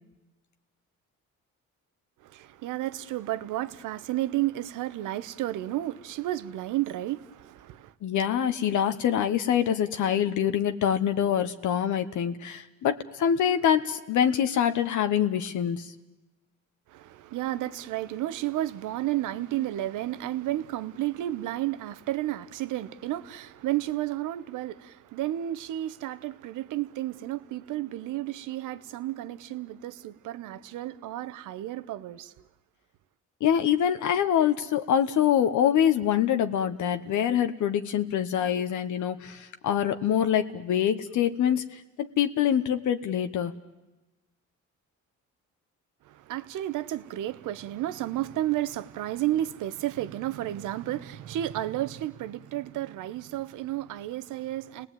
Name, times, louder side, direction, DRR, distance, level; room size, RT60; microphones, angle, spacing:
voice 1, 2.2-7.9 16.9-32.3 46.1-54.9, right 14 dB, 90° right, 1.1 m, -32 dB
voice 2, 8.0-15.9 33.4-43.5, left 9 dB, 75° left, 1.2 m, -25 dB
30.0 x 19.0 x 9.2 m
cardioid pair, 90°, 30 cm